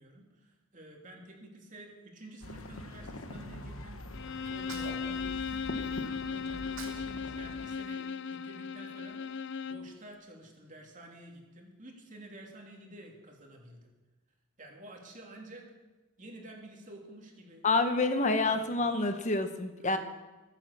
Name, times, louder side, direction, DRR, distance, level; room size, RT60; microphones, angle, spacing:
voice 1, 0.0-4.0 4.5-8.0 8.3-9.2 9.6-13.9 14.6-15.7 16.2-17.6 18.5-18.6 19.8-20.0, right 1 dB, 35° right, 1 dB, 3.1 m, -50 dB
sound 1, 2.4-7.7, left 1 dB, 75° left, 1.3 m, -44 dB
Bowed string instrument, 4.1-9.9, left 6 dB, 55° left, 0.6 m, -37 dB
Sneeze, 4.4-6.0 6.5-7.1 7.4-8.8, right 4 dB, 70° right, 2.3 m, -49 dB
voice 2, 17.6-20.0, left 3 dB, 35° left, 8 dB, 1.0 m, -28 dB
23.0 x 8.6 x 6.7 m, 1.2 s
head